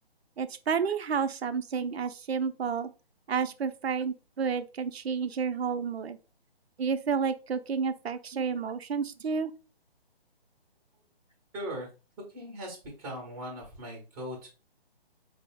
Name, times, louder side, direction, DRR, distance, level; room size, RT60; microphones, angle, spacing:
voice 1, 0.4-2.9 3.3-6.2 6.8-9.5, right 6 dB, 85° right, 0.5 m, -30 dB
voice 2, 11.5-11.9 12.3-14.5, equal, 5° right, 0.7 m, -39 dB
4.1 x 2.0 x 3.4 m
hypercardioid pair, 155°, 31 cm